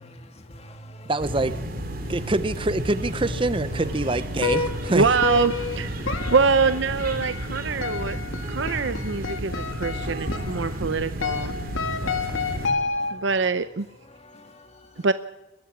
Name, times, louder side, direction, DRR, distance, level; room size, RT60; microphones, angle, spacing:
voice 1, 0.0-1.1 2.0-2.3 6.0-6.2 7.4-8.6 9.4-9.6 9.9-10.5 11.1-11.2 11.9-13.3 14.0-15.1, equal, 30° left, 1.9 m, -48 dB
voice 2, 1.1-1.6 2.1-5.1 12.0-12.3, right 2 dB, 25° right, 0.7 m, -25 dB
sound 1, 1.2-12.7, right 1 dB, 45° right, 2.9 m, -32 dB
sound 2, 4.4-13.4, left 4 dB, 75° left, 2.0 m, -30 dB
voice 3, 4.9-8.2 8.5-11.6 13.1-13.9 15.0-15.1, right 4 dB, 60° right, 0.7 m, -24 dB
22.0 x 14.5 x 9.8 m
head